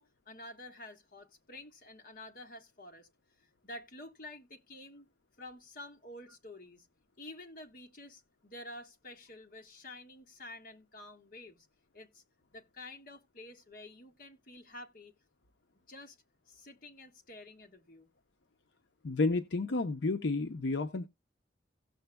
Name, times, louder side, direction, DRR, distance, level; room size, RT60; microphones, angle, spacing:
voice 1, 0.0-3.1 3.6-5.1 5.4-6.9 7.2-11.7 11.9-12.2 12.5-15.1 15.9-16.2 16.5-18.1, left 1 dB, 50° left, 1.3 m, -49 dB
voice 2, 19.0-21.1, left 3 dB, 80° left, 0.6 m, -31 dB
16.5 x 6.8 x 2.2 m
head